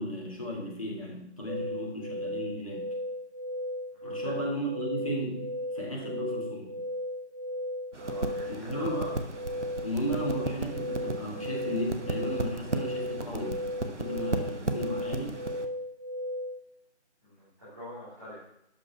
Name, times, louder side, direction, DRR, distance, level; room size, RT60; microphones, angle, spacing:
voice 1, 0.0-2.9 4.0-6.8 8.4-9.1 9.8-15.4, equal, 30° left, -3 dB, 2.2 m, -35 dB
sound 1, 1.5-16.6, left 1 dB, 40° right, 0.6 m, -36 dB
voice 2, 3.9-4.3 6.0-6.1 7.9-9.1 17.2-18.4, equal, 15° right, -11 dB, 1.9 m, -44 dB
sound 2, 7.9-15.7, right 2 dB, 80° right, 1.2 m, -36 dB
12.0 x 5.1 x 5.7 m, 0.81 s
figure-of-eight pair, 170°, 35 cm